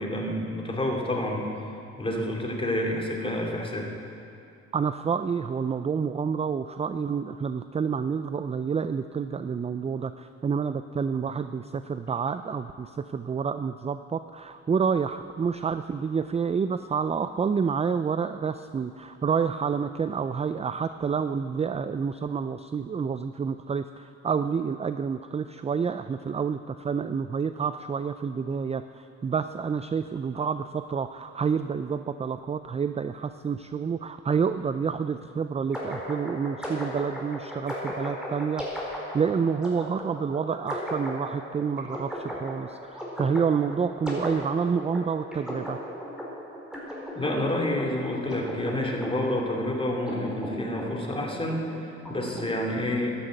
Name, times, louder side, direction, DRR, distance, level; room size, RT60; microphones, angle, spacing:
voice 1, 0.0-1.5 2.0-3.9 47.1-53.1, left 1 dB, 20° left, -1 dB, 2.8 m, -29 dB
voice 2, 4.7-38.9 39.1-45.8, right 6 dB, 20° right, 11 dB, 0.4 m, -28 dB
sound 1, 35.7-52.4, equal, ahead, 4.5 m, -36 dB
12.0 x 11.5 x 8.1 m, 2.5 s
cardioid pair, 90°, 30 cm